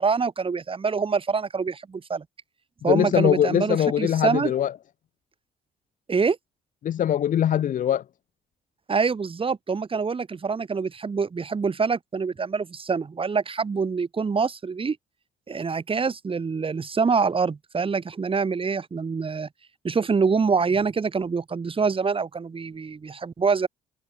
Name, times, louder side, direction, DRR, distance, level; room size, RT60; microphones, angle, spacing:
voice 1, 0.0-2.2 2.8-4.5 6.1-6.4 8.9-15.0 15.5-19.5 19.8-23.7, right 5 dB, 30° right, 1.6 m, -25 dB
voice 2, 2.9-4.7 6.8-8.0, left 10 dB, 45° left, 0.7 m, -22 dB
figure-of-eight pair, 50°, 19 cm